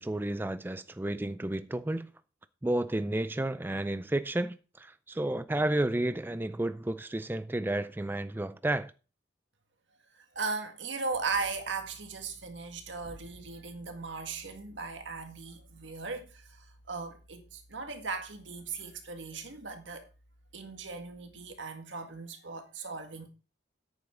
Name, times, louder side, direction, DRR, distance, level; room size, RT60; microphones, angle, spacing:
voice 1, 0.0-2.1 2.6-8.9, right 1 dB, 10° right, 0.4 m, -31 dB
voice 2, 10.4-16.4 16.9-20.0 20.5-23.3, right 4 dB, 80° right, 1.9 m, -37 dB
sound 1, 11.1-21.6, equal, 20° left, 2.5 m, -59 dB
10.5 x 8.8 x 3.8 m
head